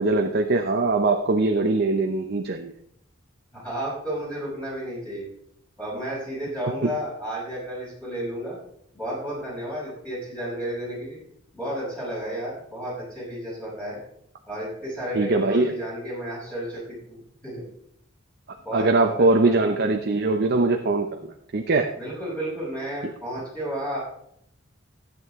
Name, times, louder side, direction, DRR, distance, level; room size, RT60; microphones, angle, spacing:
voice 1, 0.0-2.7 6.8-6.9 15.1-15.8 18.7-21.1 21.5-21.9, right 3 dB, 55° right, 4 dB, 0.7 m, -21 dB
voice 2, 3.5-5.3 5.8-8.6 8.9-11.2 11.5-14.0 14.5-17.6 18.6-19.6 21.9-24.0, right 1 dB, 5° left, -8 dB, 5.6 m, -32 dB
14.5 x 8.6 x 3.6 m, 0.72 s
head